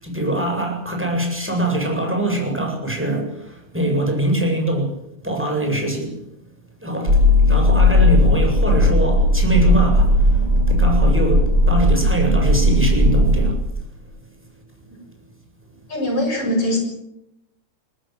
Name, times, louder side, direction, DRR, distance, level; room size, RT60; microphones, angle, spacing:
voice 1, 0.0-5.0 5.2-6.1 6.8-7.2 7.5-13.6, right 1 dB, 5° right, 1 dB, 7.7 m, -23 dB
sound 1, 7.1-13.5, left 1 dB, 35° right, 4.4 m, -16 dB
voice 2, 15.9-16.8, left 1 dB, 50° left, 3 dB, 8.1 m, -22 dB
22.5 x 19.5 x 9.3 m, 0.85 s
omnidirectional pair, 3.3 m